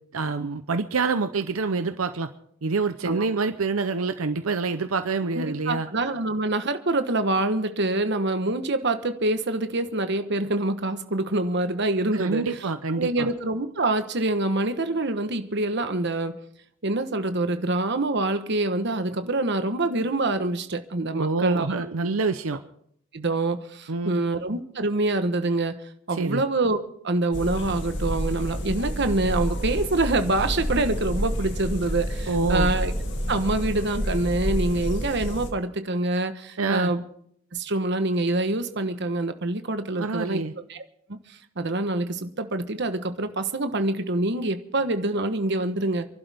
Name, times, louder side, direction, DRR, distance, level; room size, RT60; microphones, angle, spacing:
voice 1, 0.1-2.3 2.6-5.9 12.1-13.3 21.1-22.6 23.9-24.2 26.1-26.5 32.3-32.7 36.6-36.9 40.0-40.5, right 4 dB, 85° right, 9 dB, 0.8 m, -26 dB
voice 2, 5.3-12.4 12.9-16.4 16.8-21.9 23.1-25.8 26.1-26.8 27.0-32.9 33.3-37.0 37.5-40.4 40.7-40.8 41.1-46.1, right 2 dB, 55° right, 9 dB, 1.2 m, -26 dB
sound 1, 27.3-35.5, equal, 60° left, 2.1 m, -29 dB
28.5 x 12.0 x 3.6 m, 0.69 s
head